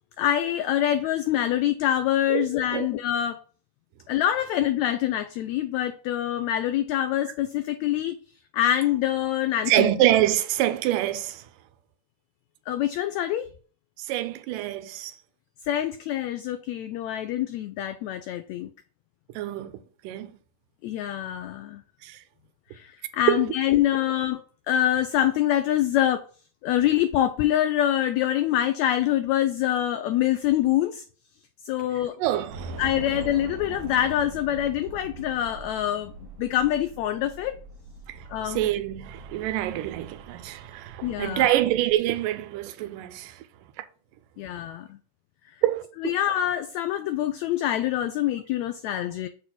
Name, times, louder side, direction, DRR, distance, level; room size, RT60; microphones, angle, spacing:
voice 1, 0.2-3.4 4.1-8.2 8.5-9.9 12.7-13.5 15.7-18.7 20.8-21.8 22.7-26.3 26.6-31.0 31.6-32.2 32.8-36.1 36.4-37.6 38.3-38.6 41.0-41.5 44.4-45.0 46.0-49.3, left 12 dB, 85° left, 1.6 m, -25 dB
voice 2, 2.3-2.9 9.7-11.5 14.0-15.1 19.3-20.3 22.0-22.2 23.3-23.5 31.9-32.8 38.1-43.4 43.8-43.9 45.6-45.8, right 13 dB, 90° right, 2.3 m, -26 dB
Train / Subway metro underground, 32.5-41.9, right 3 dB, 70° right, 2.8 m, -42 dB
6.6 x 4.1 x 6.0 m
omnidirectional pair, 3.7 m